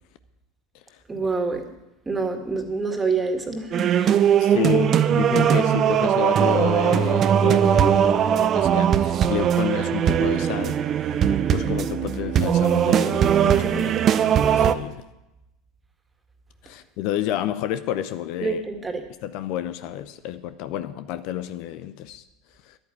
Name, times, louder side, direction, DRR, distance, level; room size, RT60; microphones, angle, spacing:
voice 1, 1.1-1.6 2.1-4.1 18.4-19.0, right 4 dB, 20° right, 2.2 m, -26 dB
sound 1, 3.7-14.7, right 9 dB, 40° right, 0.7 m, -20 dB
voice 2, 4.4-11.2 11.5-14.1 14.5-15.0 16.6-18.6 19.2-22.2 22.6-22.8, left 12 dB, 60° left, 0.6 m, -30 dB
11.0 x 9.1 x 8.3 m
hypercardioid pair, 75°, 0 cm